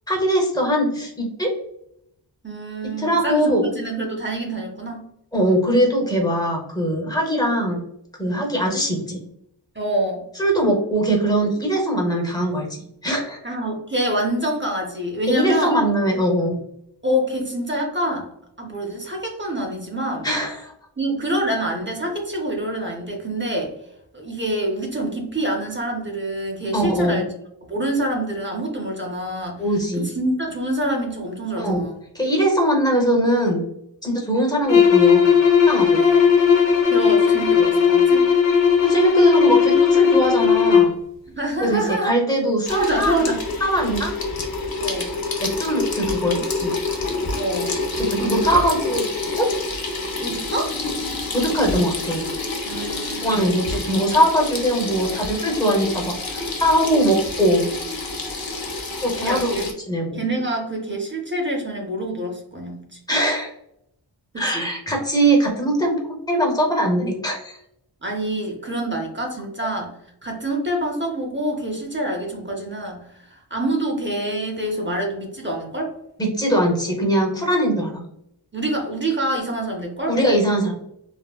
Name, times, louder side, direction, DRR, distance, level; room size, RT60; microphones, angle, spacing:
voice 1, 0.1-1.5 3.0-3.6 5.3-7.8 8.2-9.2 10.4-13.4 15.3-16.6 20.2-20.7 26.7-27.2 29.6-30.1 31.6-31.8 32.1-33.6 34.0-35.2 35.7-36.0 38.8-41.0 41.6-43.2 43.6-44.2 45.4-46.7 47.9-49.0 49.4-49.5 51.3-52.3 53.2-57.7 59.0-60.2 63.1-63.5 64.4-66.0 66.3-67.6 76.2-78.0 80.1-80.7, right 1 dB, 10° left, 0 dB, 0.8 m, -21 dB
voice 2, 2.4-5.0 8.3-8.5 9.7-10.2 13.4-15.7 17.0-18.3 18.6-20.3 21.0-23.8 24.1-27.3 27.7-29.6 30.0-32.0 35.9-36.3 36.9-38.3 41.4-42.2 42.7-43.4 44.8-45.1 47.4-47.8 48.2-48.7 50.2-50.8 52.7-53.6 59.2-59.7 60.1-63.0 64.3-64.7 68.0-69.9 70.2-75.9 78.5-80.2, right 1 dB, 25° right, 1 dB, 0.6 m, -26 dB
sound 1, 34.6-41.0, left 6 dB, 75° left, 0.9 m, -16 dB
Water tap faucet / Sink (filling or washing), 42.7-59.7, left 3 dB, 55° left, 0.7 m, -28 dB
3.4 x 2.1 x 2.3 m, 0.77 s
wide cardioid pair, 75°, 45 cm